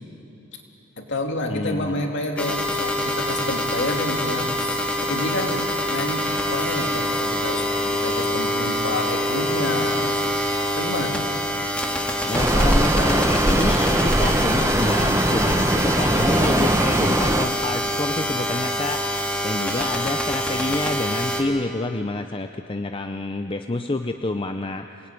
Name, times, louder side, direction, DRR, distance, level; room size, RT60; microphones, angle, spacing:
voice 1, 1.0-10.1 10.7-11.2, left 1 dB, 55° left, 2 dB, 2.9 m, -29 dB
voice 2, 1.5-2.1 12.3-25.1, left 2 dB, 25° left, 7 dB, 0.6 m, -28 dB
sound 1, 2.4-21.4, equal, 5° left, 2.3 m, -25 dB
sound 2, 12.3-17.5, right 1 dB, 15° right, 1.0 m, -20 dB
27.5 x 19.5 x 9.6 m, 3.0 s
head